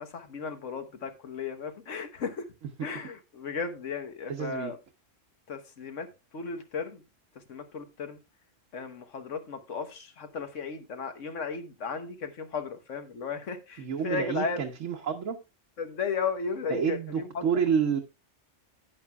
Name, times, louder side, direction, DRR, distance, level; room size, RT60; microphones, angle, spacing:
voice 1, 0.0-2.5 2.8-4.8 5.5-7.0 7.3-8.2 8.7-14.6 15.8-17.4, left 5 dB, 75° left, 1.5 m, -35 dB
voice 2, 4.3-4.7 13.8-15.4 16.7-18.0, right 7 dB, 85° right, 1.3 m, -29 dB
12.0 x 9.0 x 2.3 m
omnidirectional pair, 1.3 m